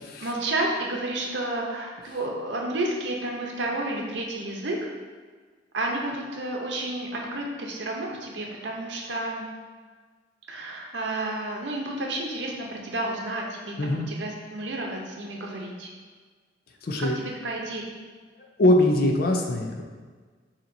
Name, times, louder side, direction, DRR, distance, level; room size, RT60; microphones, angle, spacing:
voice 1, 0.2-4.8 5.7-9.5 10.5-15.9 17.0-17.8, right 2 dB, 80° right, 0 dB, 0.7 m, -31 dB
voice 2, 13.8-14.1 16.8-17.2 18.6-19.8, left 1 dB, 55° left, 2 dB, 0.5 m, -22 dB
6.7 x 2.9 x 2.6 m, 1.5 s
head